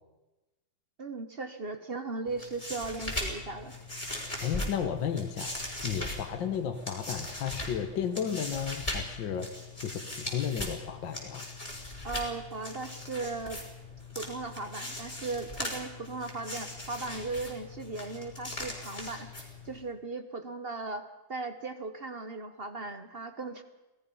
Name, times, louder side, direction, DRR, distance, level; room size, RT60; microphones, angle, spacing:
voice 1, 1.0-3.7 12.0-13.6 14.1-19.3 19.6-23.6, right 3 dB, 40° right, 9 dB, 0.9 m, -37 dB
sound 1, 2.3-19.9, left 1 dB, 15° left, 4.4 m, -39 dB
voice 2, 4.4-9.5 9.8-11.5, left 8 dB, 60° left, 6 dB, 1.8 m, -33 dB
27.0 x 18.5 x 5.5 m, 1.1 s
omnidirectional pair, 2.3 m